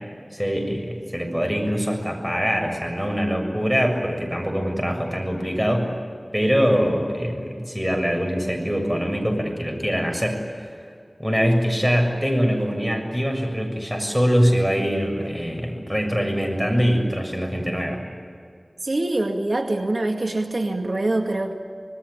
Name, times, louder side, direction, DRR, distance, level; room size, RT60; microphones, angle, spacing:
voice 1, 0.3-5.9 6.3-10.7 11.2-18.0, equal, 10° right, 3 dB, 7.1 m, -23 dB
voice 2, 18.8-21.5, right 2 dB, 75° right, 3 dB, 2.1 m, -24 dB
26.5 x 19.5 x 10.0 m, 2.3 s
wide cardioid pair, 45°, 0 cm